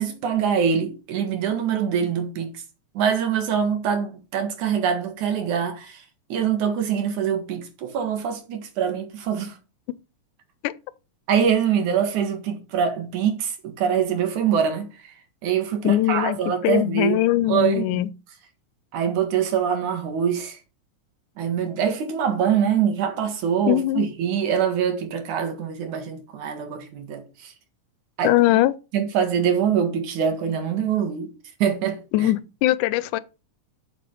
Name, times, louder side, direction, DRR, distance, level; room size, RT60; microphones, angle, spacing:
voice 1, 0.0-2.5 2.9-6.0 6.3-9.5 11.3-15.1 15.4-17.2 17.5-18.0 18.9-20.6 21.4-27.5 28.2-28.3 28.9-31.3 31.6-32.3, right 8 dB, 80° right, 3.1 m, -24 dB
voice 2, 15.8-16.4 16.6-18.1 23.7-24.1 28.2-28.7 32.1-33.2, left 16 dB, 90° left, 2.1 m, -21 dB
7.7 x 7.0 x 5.3 m
omnidirectional pair, 3.5 m